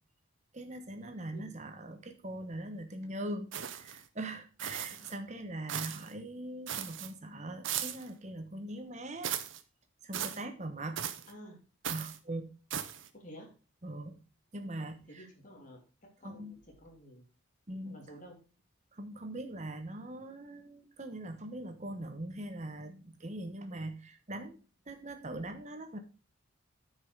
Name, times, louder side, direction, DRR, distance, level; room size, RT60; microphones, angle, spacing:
voice 1, 0.5-9.3 10.0-11.0 11.9-12.5 13.8-14.2 14.5-15.3 16.2-16.6 17.7-18.2 18.9-24.6 24.9-26.0, right 1 dB, 35° right, 7 dB, 1.2 m, -41 dB
sound 1, 3.5-4.0 4.6-5.1 5.7-6.1 6.7-7.1 7.6-8.1 9.2-9.6 10.1-10.4 11.0-11.3 11.8-12.2 12.7-13.1, right 10 dB, 65° right, 0.8 m, -37 dB
voice 2, 11.3-11.6 13.1-13.5 15.1-15.8 16.2-17.2 17.8-18.4, equal, 40° left, 0 dB, 2.9 m, -51 dB
9.6 x 5.6 x 4.7 m, 0.34 s
head